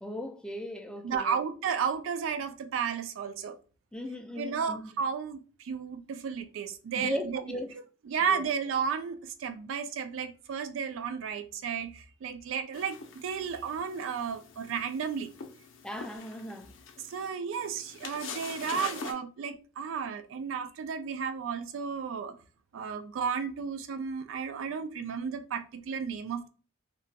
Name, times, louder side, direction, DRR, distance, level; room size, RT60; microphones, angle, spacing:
voice 1, 0.0-1.4 3.9-4.9 7.0-7.7 8.3-8.4 15.8-16.7, left 1 dB, 5° left, 0.3 m, -37 dB
voice 2, 1.0-3.6 4.4-7.4 8.1-15.3 17.0-22.3 22.7-26.5, right 6 dB, 80° right, 0.3 m, -33 dB
sound 1, 12.7-19.1, left 5 dB, 70° left, 0.5 m, -44 dB
2.8 x 2.1 x 2.7 m
head